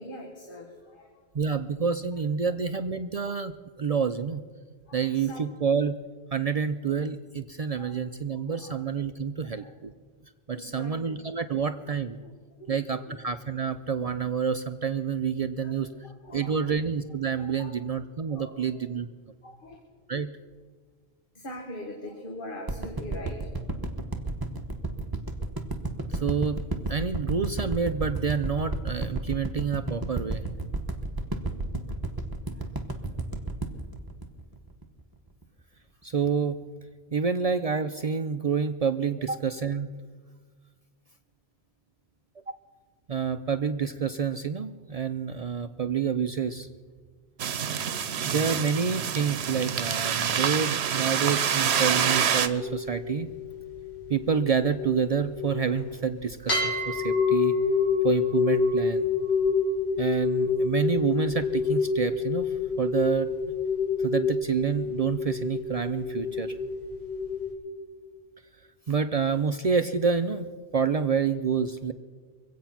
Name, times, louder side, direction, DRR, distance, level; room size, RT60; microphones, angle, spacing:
voice 1, 0.0-1.2 2.7-2.8 4.9-5.4 7.8-8.0 8.3-8.8 9.4-9.7 10.6-11.2 12.2-12.3 12.6-13.2 15.6-15.7 16.0-16.8 17.4-17.8 18.3-18.5 19.4-19.8 21.4-23.4, left 1 dB, 55° left, 1 dB, 1.8 m, -42 dB
voice 2, 1.3-3.5 3.8-4.4 4.9-5.9 6.3-9.9 10.5-12.2 12.7-15.9 16.3-19.1 20.1-20.3 26.1-26.6 26.9-30.4 36.0-36.6 37.1-39.9 43.1-46.7 48.2-53.3 54.1-57.6 58.0-59.1 60.0-63.3 64.0-66.5 68.9-70.5 70.7-71.9, right 6 dB, 50° right, 9 dB, 0.5 m, -28 dB
sound 1, 22.7-35.0 35.4-35.5, right 2 dB, 20° right, 1.1 m, -32 dB
sound 2, 47.4-52.5, right 8 dB, 80° right, 1.0 m, -27 dB
sound 3, 52.6-56.0 56.5-67.5, left 5 dB, 85° left, 3.4 m, -28 dB
23.5 x 8.3 x 5.9 m, 1.5 s
omnidirectional pair, 1.1 m